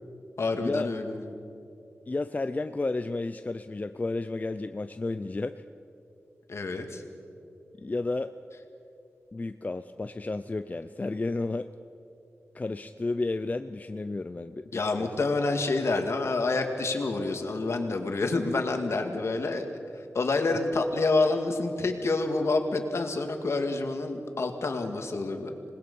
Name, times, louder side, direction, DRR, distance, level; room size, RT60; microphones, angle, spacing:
voice 1, 0.4-1.3 6.5-7.0 14.7-19.7 20.1-25.5, left 3 dB, 65° left, 5 dB, 2.0 m, -28 dB
voice 2, 2.1-5.6 7.8-8.3 9.3-11.7 12.5-15.1, left 2 dB, 30° left, 9 dB, 0.5 m, -32 dB
26.5 x 19.5 x 5.4 m, 2.7 s
wide cardioid pair, 75°, 5 cm